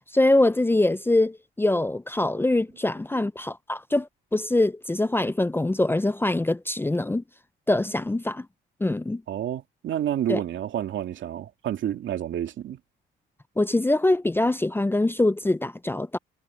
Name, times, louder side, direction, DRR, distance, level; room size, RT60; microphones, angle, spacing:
voice 1, 0.1-7.2 7.7-8.5 8.8-9.2 10.3-10.4 13.6-16.2, left 2 dB, 10° left, 0.6 m, -23 dB
voice 2, 9.3-12.8, right 10 dB, 70° right, 2.6 m, -29 dB
cardioid pair, 90°, 20 cm